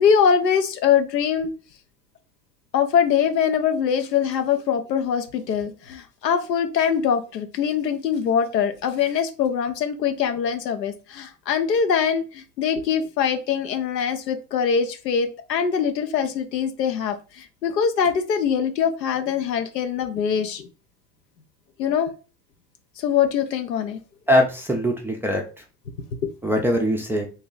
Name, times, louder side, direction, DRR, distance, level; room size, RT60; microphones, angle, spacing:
voice 1, 0.0-1.5 2.7-20.7 21.8-22.1 23.0-24.0 26.2-26.3, left 7 dB, 80° left, 8 dB, 0.8 m, -23 dB
voice 2, 24.3-25.6 26.4-27.3, equal, 5° right, 0 dB, 0.4 m, -22 dB
2.9 x 2.8 x 3.8 m, 0.33 s
hypercardioid pair, 85°, 49 cm